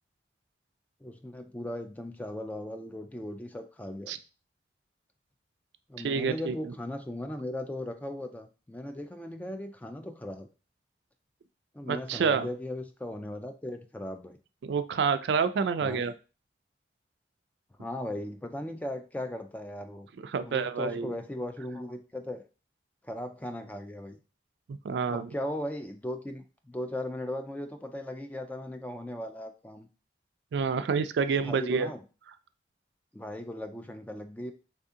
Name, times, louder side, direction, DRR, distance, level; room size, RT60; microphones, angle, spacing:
voice 1, 1.0-4.2 5.9-10.5 11.7-14.4 15.8-16.0 17.8-20.1 20.4-22.4 23.0-24.2 25.1-29.9 31.4-32.0 33.1-34.5, left 1 dB, 10° left, 6 dB, 0.3 m, -37 dB
voice 2, 6.0-6.7 11.9-12.5 14.6-16.1 20.2-21.1 24.7-25.3 30.5-31.9, right 5 dB, 70° right, 11 dB, 0.3 m, -28 dB
3.4 x 2.7 x 3.6 m, 0.33 s
head